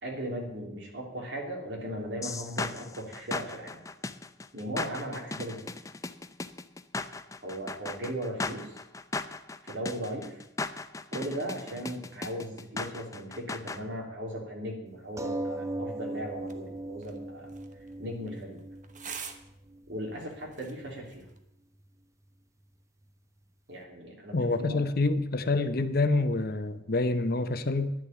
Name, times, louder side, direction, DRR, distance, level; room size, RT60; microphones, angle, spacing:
voice 1, 0.0-3.8 4.5-5.7 7.4-8.8 9.6-10.4 11.1-17.5 18.0-18.6 19.9-21.2 23.7-24.8, equal, 65° right, 0 dB, 3.3 m, -37 dB
sound 1, 2.2-13.8, left 3 dB, 15° left, 0.5 m, -37 dB
sound 2, 15.2-20.2 20.9-21.0 21.3-21.4, right 1 dB, 15° right, 0.7 m, -38 dB
sound 3, 16.3-21.4, right 6 dB, 40° right, 1.1 m, -48 dB
voice 2, 24.3-27.9, left 2 dB, 50° left, 10 dB, 0.8 m, -27 dB
10.5 x 7.0 x 9.1 m, 0.82 s
head